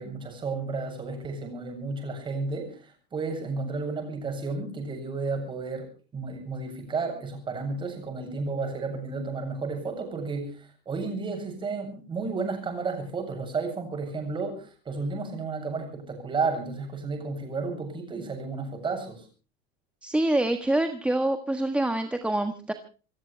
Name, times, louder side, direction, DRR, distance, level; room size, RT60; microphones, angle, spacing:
voice 1, 0.0-19.3, right 4 dB, 25° right, 4 dB, 7.9 m, -32 dB
voice 2, 20.0-22.7, right 1 dB, 5° right, 7 dB, 1.5 m, -26 dB
27.5 x 15.0 x 3.4 m, 0.37 s
cardioid pair, 145°, 21 cm